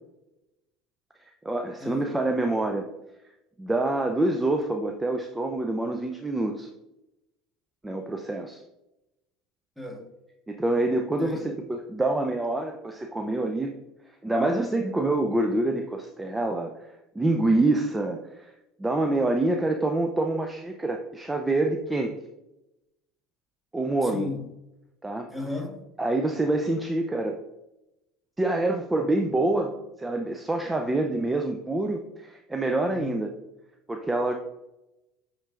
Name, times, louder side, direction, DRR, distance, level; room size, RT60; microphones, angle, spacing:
voice 1, 1.2-2.9 3.6-6.7 7.8-8.6 10.5-13.8 14.2-18.5 18.8-22.1 23.7-24.3 25.0-25.3 26.0-27.4 28.4-33.3 33.9-34.3, right 2 dB, 15° right, 4 dB, 0.6 m, -26 dB
voice 2, 1.8-2.1 9.8-10.1 11.2-11.5 24.0-24.5 25.3-25.8 32.9-33.2, left 3 dB, ahead, 1 dB, 1.5 m, -35 dB
9.8 x 4.5 x 2.5 m, 0.93 s
hypercardioid pair, 75°, 0 cm